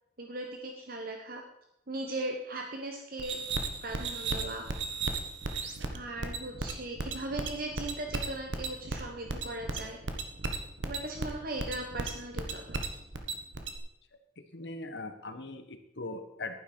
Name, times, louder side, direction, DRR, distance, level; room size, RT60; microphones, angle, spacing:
voice 1, 0.2-1.4 1.9-3.4 3.8-4.6 5.9-10.0 10.8-12.8, right 2 dB, 50° right, 2 dB, 1.2 m, -38 dB
sound 1, 3.2-13.8, right 3 dB, 90° right, 1.3 m, -35 dB
voice 2, 14.4-16.6, left 2 dB, 70° left, 8 dB, 1.2 m, -40 dB
11.5 x 9.8 x 4.5 m, 0.83 s
head